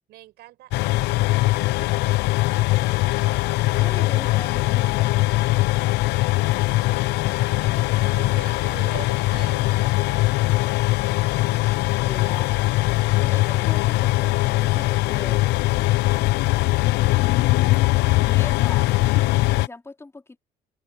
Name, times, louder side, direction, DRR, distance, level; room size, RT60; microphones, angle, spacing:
voice 1, 0.1-2.7 6.9-10.2 11.4-11.5, right 15 dB, 80° right, 6.2 m, -44 dB
sound 1, 0.7-19.7, left 19 dB, 85° left, 0.5 m, -21 dB
sound 2, 2.4-19.2, left 12 dB, 60° left, 1.1 m, -48 dB
voice 2, 3.8-5.4 12.0-12.5 13.2-15.5 18.2-18.9 19.3-20.4, left 2 dB, 15° left, 2.8 m, -40 dB
open air
cardioid pair, 110°, 17 cm